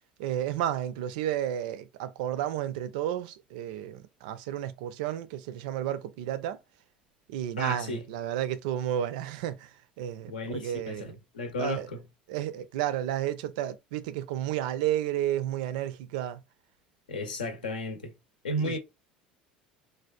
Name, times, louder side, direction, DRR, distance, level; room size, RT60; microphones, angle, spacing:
voice 1, 0.2-6.6 7.3-11.0 11.6-11.9 12.3-16.4 18.6-18.8, right 11 dB, 60° right, 0.4 m, -32 dB
voice 2, 7.6-8.0 10.3-12.0 17.1-18.1 18.4-18.8, left 1 dB, 75° left, 0.7 m, -33 dB
3.2 x 2.4 x 2.3 m
figure-of-eight pair, 70°, 5 cm